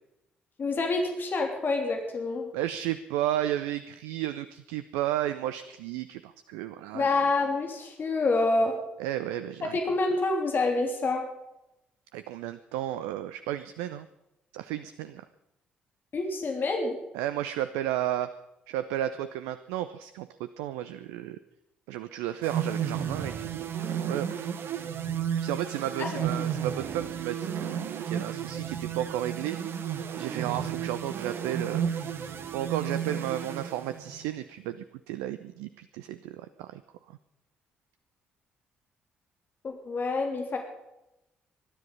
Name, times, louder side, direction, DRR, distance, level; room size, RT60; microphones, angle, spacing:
voice 1, 0.6-2.5 6.9-8.7 9.7-11.2 16.1-17.0 26.0-26.2 39.6-40.6, left 3 dB, 40° left, 2 dB, 3.2 m, -27 dB
voice 2, 2.5-7.1 9.0-9.8 12.1-14.1 14.5-15.3 17.1-18.3 18.7-21.4 21.9-24.5 25.4-29.6 30.2-31.8 32.5-36.8, right 12 dB, 70° right, 12 dB, 0.6 m, -33 dB
sound 1, 22.4-34.3, right 8 dB, 50° right, 1.3 m, -33 dB
20.5 x 12.5 x 5.4 m, 0.90 s
figure-of-eight pair, 45°, 5 cm